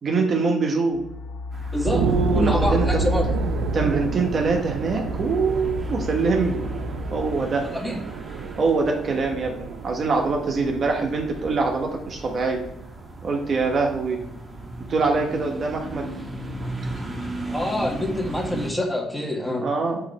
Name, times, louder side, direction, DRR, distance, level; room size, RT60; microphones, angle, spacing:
voice 1, 0.0-1.0 1.9-3.0 3.7-6.6 7.1-7.7 8.6-12.6 13.2-14.2 14.9-16.1 19.6-20.0, right 4 dB, 45° right, 2 dB, 1.2 m, -24 dB
sound 1, 0.9-7.5, left 3 dB, 65° left, 0.6 m, -30 dB
sound 2, 1.5-18.7, right 1 dB, 15° right, 1.5 m, -37 dB
voice 2, 1.7-2.0 2.3-3.2 7.7-8.0 17.5-19.6, left 1 dB, 5° left, 0 dB, 1.5 m, -26 dB
sound 3, 1.9-12.9 13.3-13.4, right 9 dB, 90° right, 0.4 m, -31 dB
8.7 x 3.2 x 4.1 m, 0.83 s
cardioid pair, 105°, 0 cm